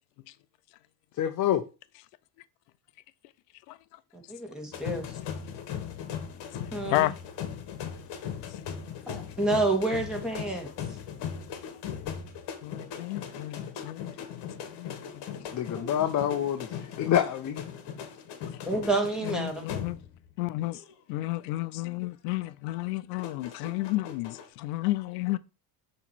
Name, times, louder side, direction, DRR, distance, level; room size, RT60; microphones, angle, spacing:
voice 1, 1.2-1.6 15.5-17.6, left 10 dB, 40° left, 0.7 m, -27 dB
voice 2, 4.3-5.2 6.7-7.1 9.1-10.7 15.8-15.9 18.7-19.6, right 2 dB, ahead, 2.0 m, -29 dB
sound 1, 4.7-20.3 20.6-20.9 23.2-24.5, left 8 dB, 60° left, 1.3 m, -39 dB
voice 3, 12.6-15.3 18.4-18.6 19.2-20.0 20.4-20.8 21.1-25.4, left 18 dB, 80° left, 0.7 m, -32 dB
6.9 x 3.2 x 4.5 m
supercardioid pair, 100°, 49 cm